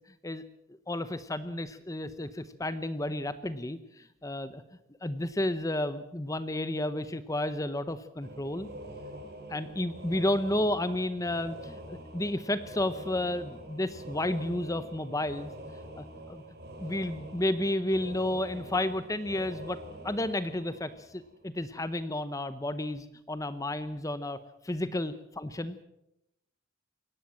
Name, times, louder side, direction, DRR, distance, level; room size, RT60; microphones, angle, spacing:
voice 1, 0.9-4.6 5.0-8.7 9.5-15.5 16.0-16.4 16.8-19.8 20.0-24.4 24.6-25.8, left 1 dB, 15° left, 12 dB, 0.8 m, -32 dB
sound 1, 8.2-21.7, right 1 dB, 50° right, 4.2 m, -45 dB
22.5 x 18.0 x 7.6 m, 0.83 s
head